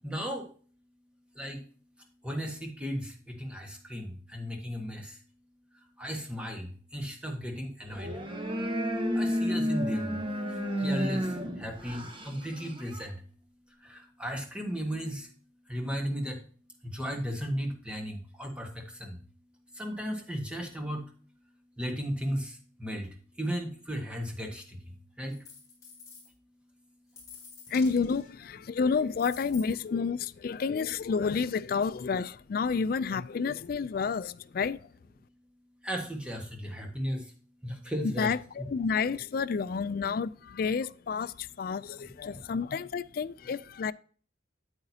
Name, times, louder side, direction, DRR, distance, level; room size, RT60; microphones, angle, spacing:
voice 1, 0.0-0.4 1.4-1.6 2.2-3.1 3.4-5.0 6.0-6.7 6.9-8.1 9.1-10.1 10.8-11.3 11.6-13.1 13.9-15.3 15.7-16.4 16.9-18.7 19.0-19.1 19.8-21.0 21.8-22.5 22.8-23.1 23.4-24.6 25.2-25.3 35.8-37.2 37.6-38.7 42.3-42.4, equal, 5° right, 1.4 m, -35 dB
sound 1, 7.9-13.1, equal, 25° right, 0.9 m, -31 dB
sound 2, 25.3-26.3 27.1-28.3 29.0-29.8 30.6-30.7, left 5 dB, 15° left, 4.0 m, -49 dB
voice 2, 27.7-34.9 38.0-43.9, left 5 dB, 45° left, 0.3 m, -30 dB
8.8 x 8.8 x 2.8 m
head